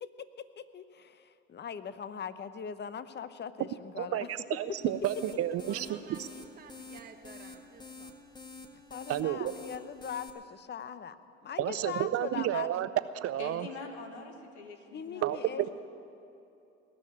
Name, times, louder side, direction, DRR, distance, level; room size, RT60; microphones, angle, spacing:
voice 1, 0.0-4.3 8.9-11.2 11.4-12.7 14.9-15.7, left 7 dB, 30° left, 13 dB, 0.8 m, -41 dB
voice 2, 4.0-6.3 9.1-9.5 11.6-12.9 13.2-13.7 15.2-15.4, right 12 dB, 45° right, 14 dB, 0.6 m, -31 dB
sound 1, 4.8-10.3, left 3 dB, 15° left, 1.4 m, -49 dB
voice 3, 5.7-8.2, right 5 dB, 25° right, 4 dB, 1.0 m, -52 dB
voice 4, 13.4-15.7, left 4 dB, 85° left, 5 dB, 1.5 m, -45 dB
19.0 x 6.5 x 9.9 m, 2.7 s
hypercardioid pair, 65°, 32 cm